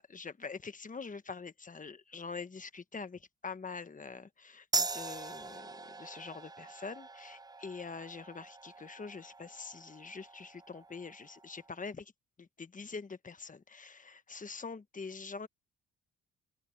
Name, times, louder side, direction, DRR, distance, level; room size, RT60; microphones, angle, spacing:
voice 1, 0.0-12.1 12.4-15.5, left 4 dB, 25° left, 1.3 m, -45 dB
sound 1, 4.7-11.8, right 3 dB, 15° right, 0.5 m, -41 dB
open air
cardioid pair, 90°, 30 cm